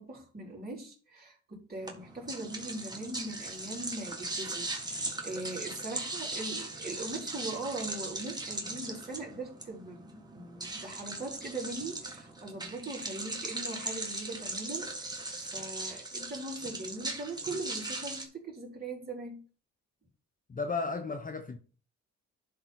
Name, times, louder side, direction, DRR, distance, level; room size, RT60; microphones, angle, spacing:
voice 1, 0.0-19.4, right 2 dB, 30° right, 4.1 m, -41 dB
sound 1, 1.8-18.2, right 2 dB, 15° right, 1.7 m, -39 dB
voice 2, 20.5-21.6, left 4 dB, 25° left, 0.8 m, -34 dB
11.5 x 4.0 x 4.5 m
cardioid pair, 90°, 30 cm